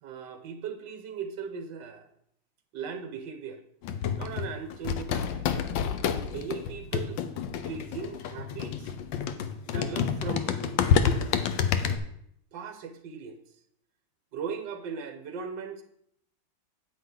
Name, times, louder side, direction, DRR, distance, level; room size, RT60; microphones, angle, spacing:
voice 1, 0.0-2.1 2.7-3.6 4.2-5.5 6.2-7.2 7.6-9.0 9.7-10.9 12.5-13.4 14.3-15.8, right 6 dB, 70° right, 7 dB, 1.6 m, -38 dB
sound 1, 3.8-12.0, left 7 dB, 80° left, 1.4 m, -29 dB
9.0 x 8.7 x 3.9 m, 0.71 s
omnidirectional pair, 2.1 m